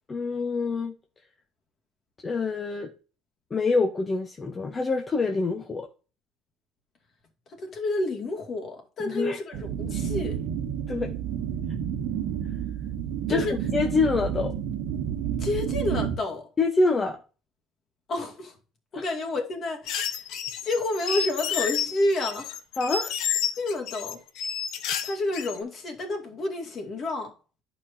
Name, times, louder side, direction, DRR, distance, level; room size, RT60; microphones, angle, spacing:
voice 1, 0.1-0.9 2.2-2.9 3.5-5.9 9.0-9.4 10.9-11.1 13.3-14.5 16.6-17.2 18.9-19.0 22.8-23.1, left 3 dB, 25° left, 0.9 m, -26 dB
voice 2, 7.6-10.4 13.3-13.5 15.4-16.5 18.1-18.5 18.9-20.2 20.6-22.6 23.6-24.2 25.0-27.3, left 2 dB, 40° left, 2.3 m, -29 dB
sound 1, 9.5-16.2, right 9 dB, 85° right, 1.0 m, -30 dB
sound 2, 19.9-25.6, left 8 dB, 75° left, 1.0 m, -30 dB
11.0 x 5.0 x 2.8 m
cardioid pair, 130°, 0 cm